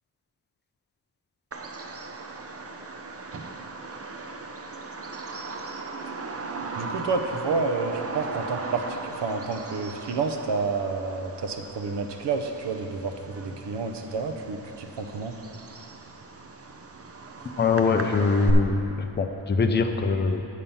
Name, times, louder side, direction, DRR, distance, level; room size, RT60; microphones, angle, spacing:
Bird vocalization bird call bird song, 1.5-18.5, right 3 dB, 35° right, 0.5 m, -37 dB
voice 1, 6.8-15.4, right 4 dB, 85° right, 5 dB, 0.8 m, -29 dB
voice 2, 17.4-20.4, left 4 dB, 25° left, 5 dB, 0.4 m, -23 dB
8.4 x 7.3 x 5.5 m, 2.8 s
wide cardioid pair, 175°, 41 cm